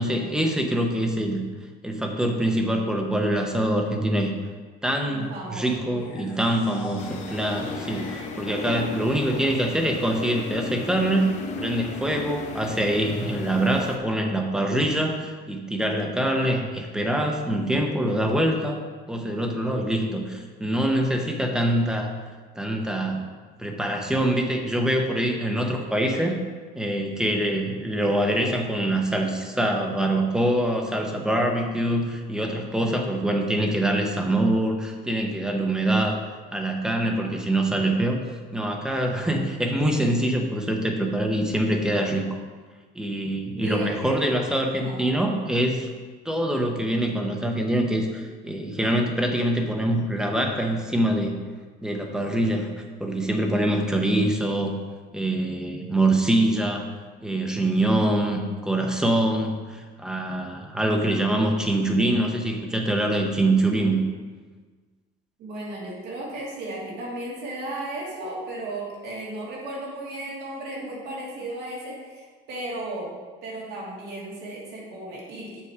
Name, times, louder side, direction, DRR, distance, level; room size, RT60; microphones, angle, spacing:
voice 1, 0.0-1.4 1.8-4.3 4.8-11.3 11.6-18.8 19.1-22.1 22.6-23.2 23.6-26.4 26.7-36.2 36.5-38.2 38.5-42.2 42.9-45.9 46.2-51.3 51.8-52.7 53.0-54.7 55.1-56.9 57.2-64.0, right 1 dB, 5° right, 2 dB, 0.8 m, -24 dB
voice 2, 5.0-6.0 7.0-7.4 8.6-9.1 43.5-44.2 44.6-45.1 65.4-75.6, right 1 dB, 55° right, -4 dB, 2.5 m, -35 dB
sound 1, 5.9-9.9, left 3 dB, 70° left, 2.0 m, -43 dB
sound 2, 7.0-14.0, left 3 dB, 35° left, 0.7 m, -35 dB
7.1 x 6.2 x 4.8 m, 1.4 s
cardioid pair, 160°, 20 cm